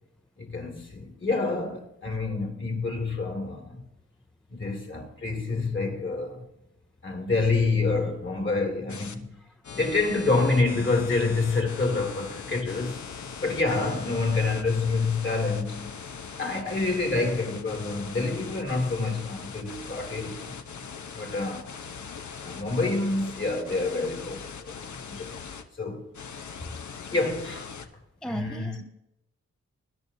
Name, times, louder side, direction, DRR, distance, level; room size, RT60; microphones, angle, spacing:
voice 1, 0.4-3.8 4.5-6.4 7.0-9.3 9.7-15.9 16.4-20.6 21.1-21.8 22.4-25.4 25.8-26.1 26.6-26.7 27.1-27.7 28.2-28.8, left 3 dB, 40° left, 2.5 m, -27 dB
sound 1, 8.9-9.1 9.6-25.6 26.1-27.9, left 6 dB, 75° left, 1.0 m, -41 dB
voice 2, 28.2-28.8, equal, 5° left, 0.4 m, -36 dB
20.5 x 11.0 x 2.8 m
wide cardioid pair, 155°, 29 cm